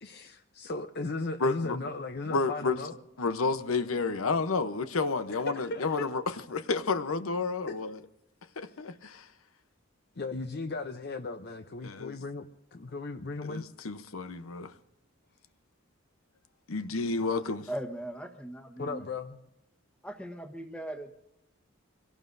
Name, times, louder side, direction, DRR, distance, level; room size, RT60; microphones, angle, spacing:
voice 1, 0.0-3.0 5.3-6.1 7.6-7.8 10.2-13.7 18.8-19.4, left 3 dB, 50° left, 0.6 m, -36 dB
voice 2, 1.4-1.8 2.3-2.8 3.2-8.0 8.6-9.3 11.8-12.2 13.4-14.7 16.7-17.7, left 4 dB, 85° left, 0.8 m, -31 dB
voice 3, 17.7-19.0 20.0-21.1, right 1 dB, 5° left, 1.2 m, -39 dB
25.0 x 17.5 x 2.6 m
head